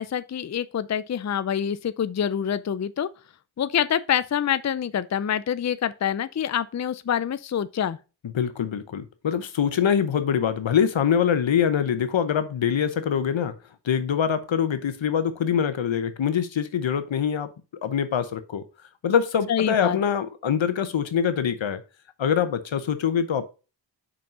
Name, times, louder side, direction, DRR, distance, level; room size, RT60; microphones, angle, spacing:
voice 1, 0.0-3.1 3.6-8.0 19.5-20.0, left 9 dB, 40° left, 0.5 m, -26 dB
voice 2, 8.2-13.5 13.8-17.5 17.8-18.6 19.0-21.8 22.2-23.4, left 8 dB, 75° left, 0.9 m, -24 dB
5.5 x 5.2 x 5.4 m
cardioid pair, 40°, 46 cm